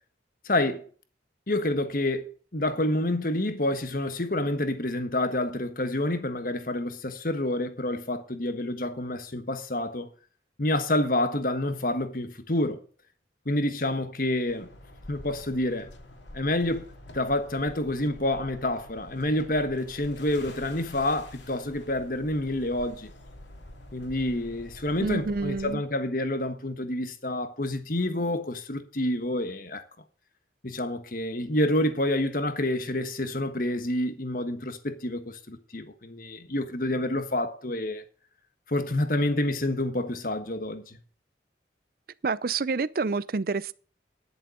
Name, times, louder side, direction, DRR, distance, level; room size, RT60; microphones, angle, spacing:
voice 1, 0.4-0.8 1.5-10.1 10.6-12.8 13.4-14.7 15.1-15.9 16.3-16.9 17.1-23.1 23.9-29.8 30.6-38.0 38.7-41.0, left 1 dB, 50° left, 1.4 m, -28 dB
sound 1, 14.5-25.7, left 1 dB, 85° left, 2.9 m, -47 dB
voice 2, 25.0-25.8 42.2-43.7, right 4 dB, 50° right, 0.5 m, -28 dB
11.0 x 7.1 x 6.5 m
head